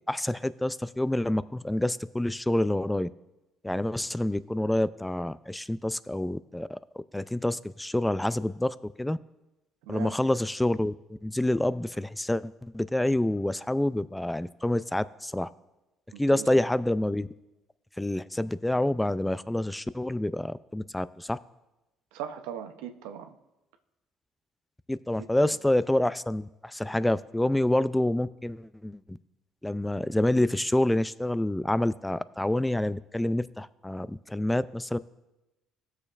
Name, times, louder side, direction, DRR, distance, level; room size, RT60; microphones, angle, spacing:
voice 1, 0.0-3.1 3.6-9.2 9.9-15.5 16.2-17.3 18.0-21.4 24.9-29.2 29.6-35.0, left 1 dB, 10° left, 16 dB, 0.3 m, -27 dB
voice 2, 9.8-10.1 16.1-16.5 22.1-23.4 25.2-25.6, right 9 dB, 90° right, 7 dB, 0.6 m, -39 dB
15.5 x 6.7 x 2.4 m, 0.99 s
supercardioid pair, 85°, 0 cm